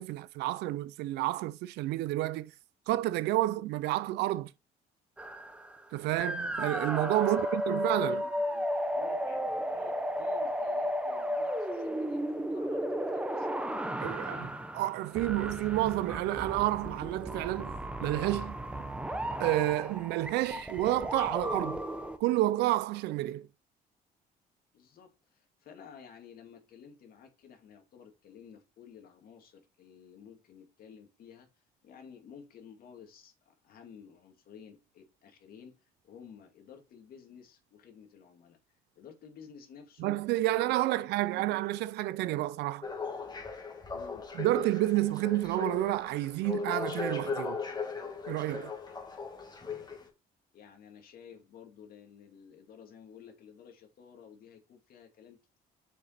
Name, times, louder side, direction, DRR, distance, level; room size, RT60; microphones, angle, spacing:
voice 1, 0.0-2.5 2.9-4.5 5.9-8.2 14.0-14.4 14.7-18.6 19.4-21.8 22.2-23.5 40.0-42.8 44.4-47.6 48.3-48.7, right 16 dB, 85° right, 0.5 m, -30 dB
sound 1, 5.2-5.9 6.2-22.2, equal, 5° right, 0.9 m, -34 dB
voice 2, 7.1-7.6 7.9-8.7 8.9-14.6 24.7-31.5 31.8-35.7 36.0-38.6 39.0-40.2 40.5-41.5 43.9-44.3 50.5-55.6, left 7 dB, 60° left, 2.2 m, -53 dB
sound 2, 42.8-50.1, left 4 dB, 25° left, 2.1 m, -38 dB
6.7 x 5.1 x 4.3 m
cardioid pair, 110°, 17 cm